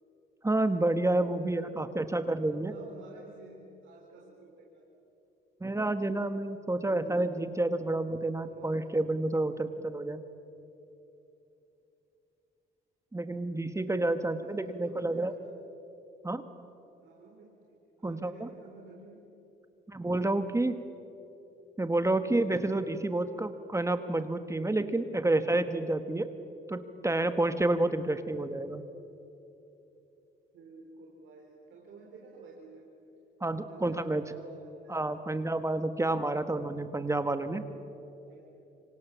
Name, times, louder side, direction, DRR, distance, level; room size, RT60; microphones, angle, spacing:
voice 1, 0.4-2.7 5.6-10.2 13.1-15.3 16.2-16.4 18.0-18.5 19.9-20.7 21.8-26.3 26.7-28.8 33.4-34.2 34.9-37.6, right 2 dB, 15° right, 9 dB, 1.4 m, -29 dB
voice 2, 2.5-4.8 6.8-7.4 8.5-8.9 9.5-9.8 14.1-15.5 17.0-19.3 30.5-32.9 33.7-35.3 38.2-38.4, right 3 dB, 75° right, -1 dB, 4.0 m, -51 dB
26.5 x 25.0 x 7.3 m, 2.9 s
cardioid pair, 90°, 20 cm